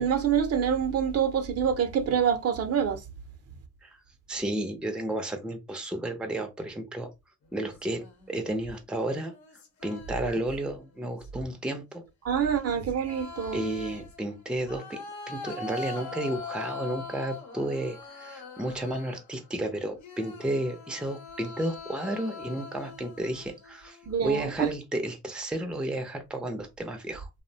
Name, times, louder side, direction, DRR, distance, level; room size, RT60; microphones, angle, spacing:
voice 1, 0.0-3.0 12.2-13.6 24.1-24.7, right 8 dB, 55° right, 0.6 m, -26 dB
voice 2, 4.3-7.1 7.5-9.3 9.8-12.0 13.5-15.0 15.3-27.3, right 1 dB, 5° right, 0.5 m, -32 dB
sound 1, 7.5-8.3 9.3-10.6 10.9-11.5 12.5-19.4 20.0-24.3, left 4 dB, 70° left, 0.8 m, -42 dB
2.6 x 2.1 x 2.6 m
cardioid pair, 85°, 30 cm